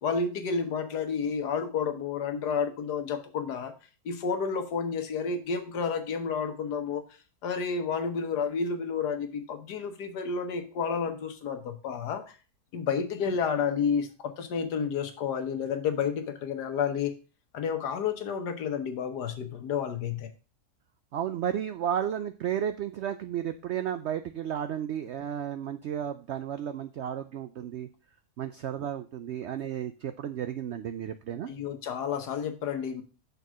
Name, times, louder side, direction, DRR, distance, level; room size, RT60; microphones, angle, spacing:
voice 1, 0.0-3.7 4.0-7.0 7.4-12.2 12.7-17.1 17.5-20.3 31.4-33.0, left 6 dB, 85° left, 7 dB, 1.6 m, -30 dB
voice 2, 21.1-27.9 28.4-31.5, right 9 dB, 80° right, 10 dB, 0.6 m, -33 dB
6.6 x 4.5 x 6.1 m, 0.34 s
omnidirectional pair, 1.7 m